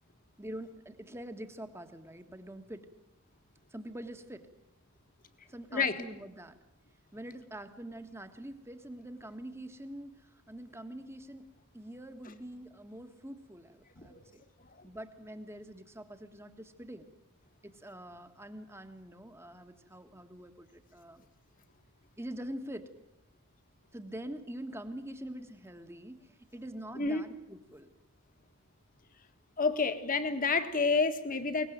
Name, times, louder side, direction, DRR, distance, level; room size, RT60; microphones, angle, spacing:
voice 1, 0.4-2.9 3.7-4.5 5.5-6.6 7.1-11.5 11.7-14.4 14.8-17.1 17.6-21.2 22.2-22.9 23.9-27.9, right 1 dB, 10° right, 8 dB, 1.6 m, -45 dB
voice 2, 29.6-31.7, left 4 dB, 40° left, 9 dB, 1.7 m, -29 dB
22.5 x 19.5 x 9.4 m, 0.90 s
head